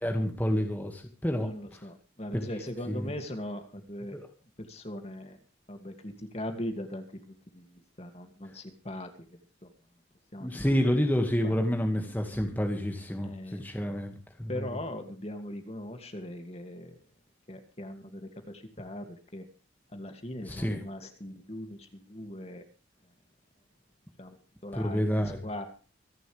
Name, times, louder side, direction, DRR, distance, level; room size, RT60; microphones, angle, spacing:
voice 1, 0.0-1.5 2.3-2.5 2.9-3.1 4.1-4.3 10.4-14.1 14.4-14.7 20.4-20.8 24.7-25.4, equal, 10° left, 3 dB, 1.9 m, -29 dB
voice 2, 1.4-4.2 4.6-5.4 5.7-9.1 9.6-9.7 10.3-10.7 11.4-11.7 13.2-13.6 14.5-16.9 17.5-19.4 19.9-22.6 24.2-24.4 24.6-25.7, left 1 dB, 35° left, 6 dB, 2.4 m, -40 dB
25.0 x 11.0 x 3.4 m, 0.37 s
head